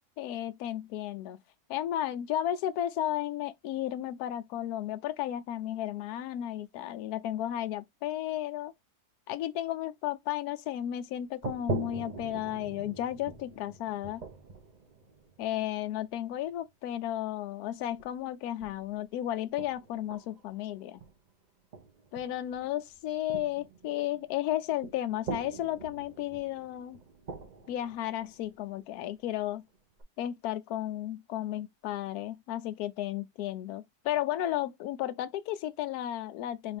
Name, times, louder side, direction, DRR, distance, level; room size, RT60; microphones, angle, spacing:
voice 1, 0.2-1.4 1.7-8.7 9.3-14.2 15.4-21.0 22.1-27.0 27.7-29.7 30.2-36.8, left 12 dB, 70° left, 1.0 m, -33 dB
sound 1, 11.1-11.2 11.4-16.3 17.6-18.2 18.6-18.9 19.6-21.3 21.7-29.2 29.7-30.0, right 3 dB, 65° right, 0.4 m, -42 dB
4.7 x 2.5 x 3.4 m
omnidirectional pair, 1.8 m